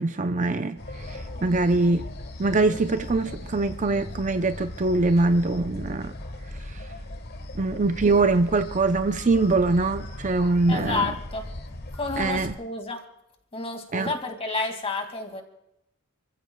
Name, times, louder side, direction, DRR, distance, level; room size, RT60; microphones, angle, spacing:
voice 1, 0.0-2.1 2.4-6.1 6.7-6.8 7.6-11.1 12.2-12.5 13.9-14.1, right 3 dB, 40° right, 0.6 m, -23 dB
sound 1, 0.8-12.5, left 1 dB, 50° left, 1.4 m, -38 dB
voice 2, 10.7-11.5 12.0-13.0 13.5-15.4, left 3 dB, 30° left, 2.3 m, -30 dB
29.5 x 15.0 x 2.3 m
head